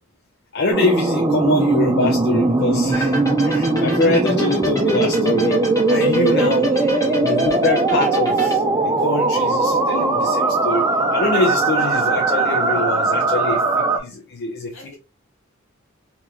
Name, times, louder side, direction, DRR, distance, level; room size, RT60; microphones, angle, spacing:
voice 1, 0.5-5.6 5.9-6.7 7.1-14.9, left 2 dB, 55° left, 2 dB, 0.5 m, -24 dB
sound 1, 0.7-14.0, right 3 dB, 20° right, 0.4 m, -19 dB
sound 2, 2.9-8.6, left 1 dB, 15° left, 0.8 m, -27 dB
voice 2, 6.6-7.3 14.7-14.9, equal, 75° left, 0 dB, 1.7 m, -40 dB
3.4 x 2.9 x 2.3 m, 0.33 s
head